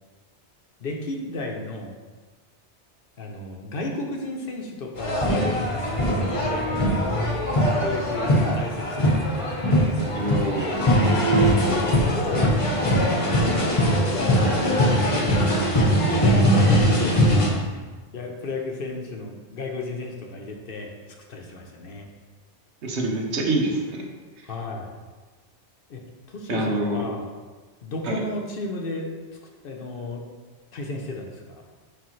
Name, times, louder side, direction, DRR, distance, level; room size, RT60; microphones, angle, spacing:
voice 1, 0.8-2.0 3.2-6.8 7.8-9.3 10.9-12.5 12.9-17.4 17.6-21.0 21.3-22.1 24.4-25.0 25.9-26.0 26.3-27.3 27.8-29.1 29.6-30.2 30.7-31.6, left 2 dB, 55° left, 1 dB, 0.9 m, -33 dB
sound 1, 5.0-17.5, equal, 30° left, 0.9 m, -21 dB
voice 2, 10.1-10.7 22.8-24.0 26.5-27.0 28.1-28.2, right 1 dB, 75° right, 1 dB, 1.2 m, -26 dB
9.4 x 3.3 x 3.1 m, 1.3 s
omnidirectional pair, 1.2 m